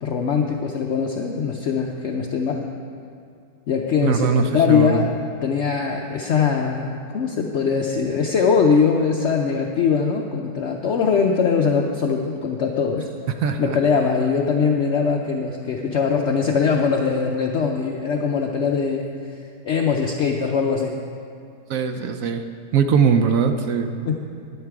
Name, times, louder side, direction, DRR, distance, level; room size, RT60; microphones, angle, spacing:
voice 1, 0.0-2.6 3.7-13.1 13.6-19.4 19.6-21.0 24.0-24.1, left 6 dB, 75° left, 1 dB, 0.6 m, -21 dB
voice 2, 4.0-5.1 13.4-13.8 21.7-22.5 22.7-23.9, right 6 dB, 70° right, 7 dB, 0.8 m, -20 dB
11.0 x 10.0 x 4.7 m, 2.4 s
omnidirectional pair, 1.9 m